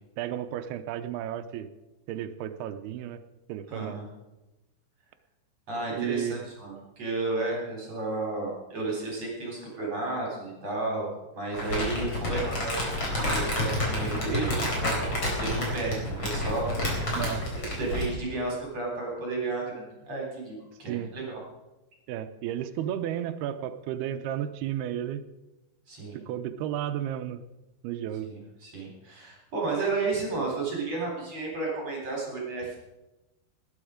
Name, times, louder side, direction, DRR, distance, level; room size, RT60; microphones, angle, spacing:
voice 1, 0.2-1.7 2.1-3.2 3.5-4.0 5.9-6.4 17.1-17.5 20.9-21.1 22.1-25.2 26.1-27.4 27.8-28.3, right 10 dB, 80° right, 9 dB, 2.3 m, -33 dB
voice 2, 3.7-4.1 5.7-15.1 15.4-16.6 17.8-21.4 25.9-26.2 28.2-32.8, right 3 dB, 35° right, -2 dB, 4.6 m, -32 dB
Crumpling crinkling, 11.5-18.2, left 1 dB, 30° left, 4.3 m, -29 dB
19.0 x 10.5 x 5.0 m, 1.0 s
omnidirectional pair, 5.3 m